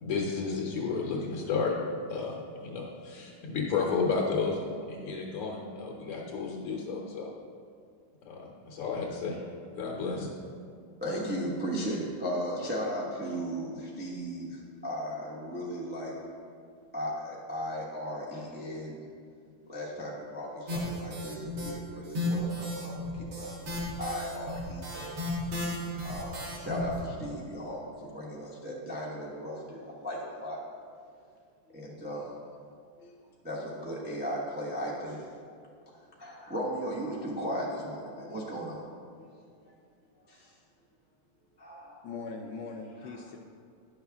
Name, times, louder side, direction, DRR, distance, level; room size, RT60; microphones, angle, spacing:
voice 1, 0.0-1.7 2.1-7.3 8.3-9.4 9.7-10.3, left 4 dB, 90° left, -3 dB, 1.8 m, -32 dB
voice 2, 11.0-16.2 16.9-19.0 19.7-25.2 25.8-30.6 31.7-32.4 33.0-33.1 33.4-35.3 35.9-38.9 39.6-39.7 40.3-40.6 41.6-42.1 43.0-43.2, equal, 10° right, -5 dB, 0.4 m, -36 dB
sound 1, 20.7-21.7 22.0-27.0, left 2 dB, 70° right, 2.3 m, -34 dB
voice 3, 42.0-43.4, left 4 dB, 70° left, 2 dB, 1.0 m, -40 dB
10.5 x 6.5 x 3.5 m, 2.3 s
omnidirectional pair, 2.4 m